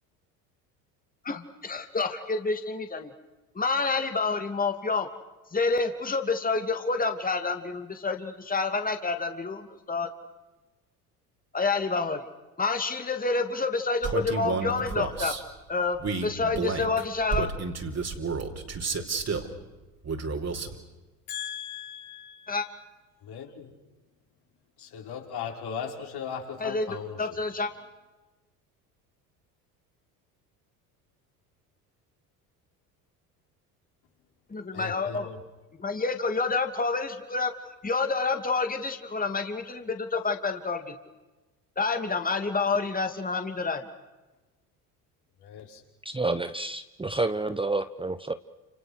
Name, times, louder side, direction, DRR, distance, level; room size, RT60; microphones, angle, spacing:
voice 1, 1.2-3.1 3.5-5.1 5.5-10.1 11.5-12.2 12.6-15.3 15.7-17.5 22.5-22.7 26.6-27.7 34.5-35.3 35.8-37.5 37.8-40.9 41.8-43.9, left 4 dB, 20° left, 6 dB, 2.8 m, -28 dB
Male speech man speaking, 14.0-15.4 16.0-19.5 20.0-20.8, right 4 dB, 35° right, 4.7 m, -31 dB
voice 2, 21.3-22.7 23.2-23.8 24.8-27.4 34.7-35.4 45.4-45.8, left 7 dB, 55° left, 2 dB, 5.6 m, -38 dB
voice 3, 46.0-48.3, right 2 dB, 10° right, 11 dB, 1.1 m, -29 dB
30.0 x 29.0 x 6.5 m, 1.1 s
hypercardioid pair, 65°, 46 cm